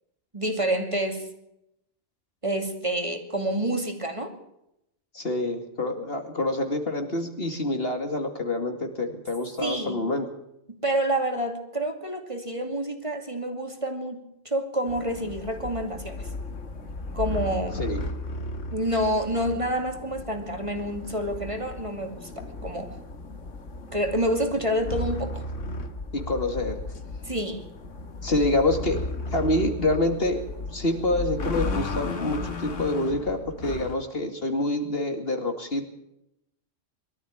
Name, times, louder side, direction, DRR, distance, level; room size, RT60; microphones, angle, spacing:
voice 1, 0.3-1.3 2.4-4.3 9.6-10.0 10.7-14.2 14.4-16.2 17.1-17.9 18.7-22.9 23.9-25.4 27.2-27.6, right 1 dB, 25° right, 4 dB, 2.7 m, -28 dB
voice 2, 5.1-10.3 17.7-18.0 26.1-26.8 28.2-30.4 30.7-35.9, left 1 dB, 50° left, 5 dB, 2.6 m, -27 dB
sound 1, 14.9-34.0, left 2 dB, 75° left, 2.1 m, -35 dB
23.0 x 13.5 x 8.7 m, 0.83 s
omnidirectional pair, 1.3 m